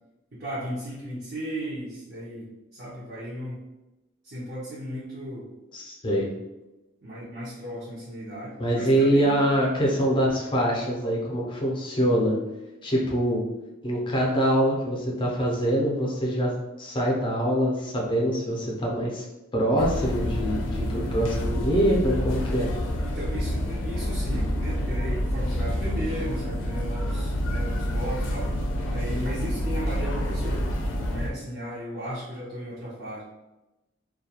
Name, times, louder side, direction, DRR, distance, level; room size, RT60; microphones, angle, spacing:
voice 1, 0.3-3.6 4.2-5.5 7.0-9.4 23.0-28.5 28.9-30.6 31.0-33.2, equal, 50° right, -9 dB, 0.7 m, -35 dB
voice 2, 5.7-6.3 8.6-12.3 12.8-13.4 13.8-16.5 16.8-19.2 19.5-22.7, equal, 25° left, -2 dB, 0.5 m, -24 dB
sound 1, 19.8-31.3, equal, 75° left, 0.4 m, -28 dB
2.3 x 2.2 x 2.8 m, 1.0 s
head